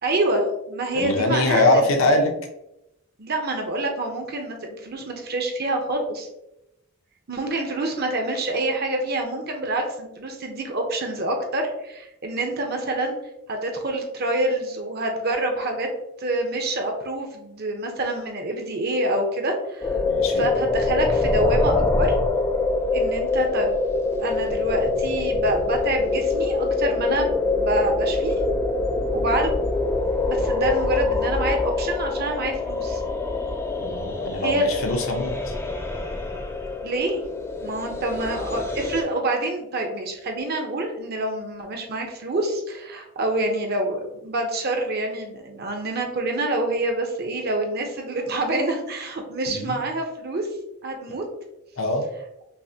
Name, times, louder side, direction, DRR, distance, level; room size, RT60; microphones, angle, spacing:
voice 1, 0.0-2.0 3.2-6.3 7.3-13.1 13.5-15.9 16.2-19.9 20.4-22.2 22.9-23.8 24.2-28.4 29.1-29.6 30.3-33.0 34.4-34.8 36.8-37.2 37.6-50.5 50.8-51.2, right 2 dB, 45° right, 3 dB, 0.7 m, -27 dB
voice 2, 0.9-2.3 20.0-20.5 33.8-35.5 49.5-49.8 51.8-52.0, left 2 dB, 70° left, 3 dB, 0.7 m, -22 dB
sound 1, 19.8-39.0, left 3 dB, 10° left, 0.3 m, -24 dB
5.4 x 2.1 x 2.7 m, 0.89 s
head